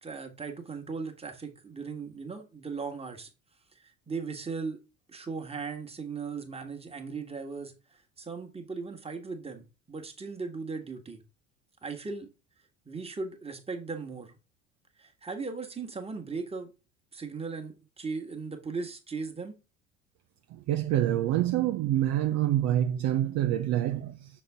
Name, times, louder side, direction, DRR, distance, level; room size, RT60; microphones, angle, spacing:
voice 1, 0.0-3.3 3.7-4.8 5.1-7.7 8.2-11.2 11.8-12.3 12.8-14.4 15.0-16.7 17.1-19.6, right 4 dB, 15° right, 1.5 m, -38 dB
voice 2, 20.5-24.3, right 12 dB, 45° right, 0.6 m, -26 dB
6.4 x 4.3 x 3.4 m
hypercardioid pair, 65°, 37 cm